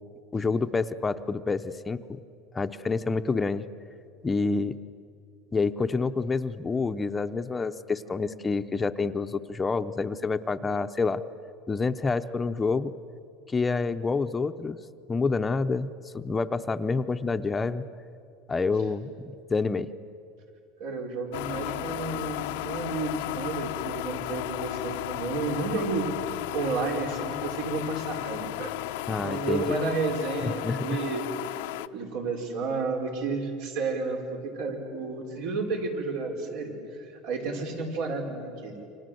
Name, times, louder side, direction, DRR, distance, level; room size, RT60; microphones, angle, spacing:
voice 1, 0.3-2.2 2.5-3.7 4.2-4.7 5.5-11.2 11.7-12.9 13.5-14.8 15.1-17.9 18.5-19.9 29.1-29.8 30.4-31.0, left 4 dB, 15° left, 9 dB, 0.7 m, -28 dB
voice 2, 20.8-26.1 26.5-28.7 29.1-31.2 31.5-31.6 31.9-38.8, right 3 dB, 75° right, 1 dB, 5.3 m, -31 dB
sound 1, 21.3-31.9, left 17 dB, 85° left, 0.7 m, -34 dB
28.5 x 25.5 x 7.8 m, 2.6 s
supercardioid pair, 140°, 0 cm